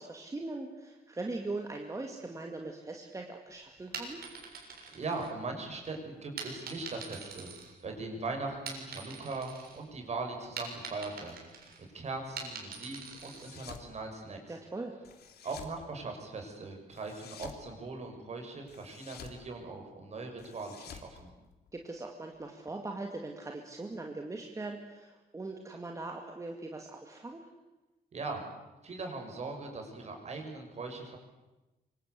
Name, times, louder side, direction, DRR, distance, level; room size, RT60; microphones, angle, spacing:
voice 1, 0.0-4.2 14.5-14.9 21.7-27.5, right 2 dB, 20° right, 2 dB, 2.4 m, -40 dB
sound 1, 3.8-5.7 6.4-8.2 8.5-9.8 10.1-13.6, right 5 dB, 75° right, 7.3 m, -44 dB
voice 2, 4.9-7.5 7.8-11.5 11.8-14.6 15.4-21.3 28.1-28.4 28.8-31.2, right 3 dB, 45° right, 3 dB, 6.7 m, -40 dB
sound 2, 13.2-13.9 15.0-15.8 16.9-17.6 18.7-19.4 20.4-21.9, left 8 dB, 90° left, 3.1 m, -50 dB
25.5 x 25.5 x 8.4 m, 1.1 s
wide cardioid pair, 140°, 16 cm